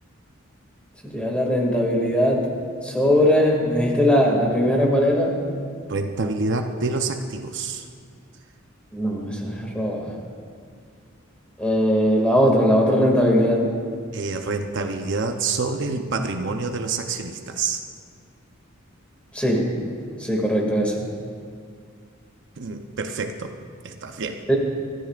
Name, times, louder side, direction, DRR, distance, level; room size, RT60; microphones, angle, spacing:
voice 1, 1.1-2.5 2.8-5.4 8.9-10.2 11.6-13.7 19.3-19.9 20.2-21.1 24.5-24.6, equal, 5° left, -1 dB, 2.2 m, -20 dB
voice 2, 5.9-7.8 14.1-17.8 22.6-23.5 23.8-24.5, right 4 dB, 60° right, 5 dB, 0.7 m, -27 dB
25.5 x 14.0 x 2.5 m, 2.1 s
head